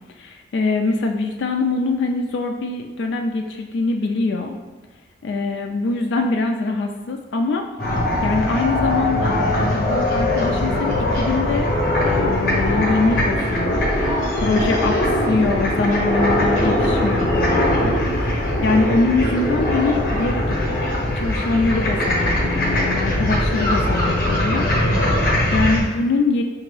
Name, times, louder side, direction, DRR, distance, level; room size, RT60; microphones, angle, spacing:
voice 1, 0.2-4.5 5.2-7.7 8.2-11.7 12.0-20.5 21.1-24.7 25.2-26.4, left 3 dB, 80° left, 3 dB, 0.3 m, -23 dB
sound 1, 7.8-25.8, left 1 dB, 50° left, 0.8 m, -21 dB
4.9 x 2.6 x 3.1 m, 1.3 s
head